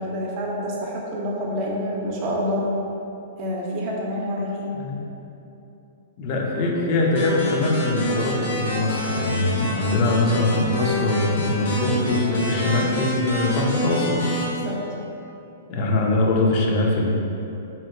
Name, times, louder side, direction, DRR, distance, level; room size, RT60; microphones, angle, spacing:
voice 1, 0.0-2.7 3.4-4.7 14.5-14.8, equal, 40° right, -2 dB, 0.6 m, -27 dB
voice 2, 6.2-14.2 15.7-17.1, left 2 dB, 45° left, -1 dB, 0.5 m, -22 dB
sound 1, 7.1-14.4, equal, 75° left, 0.8 m, -28 dB
2.9 x 2.7 x 2.6 m, 2.9 s
hypercardioid pair, 125°, 0 cm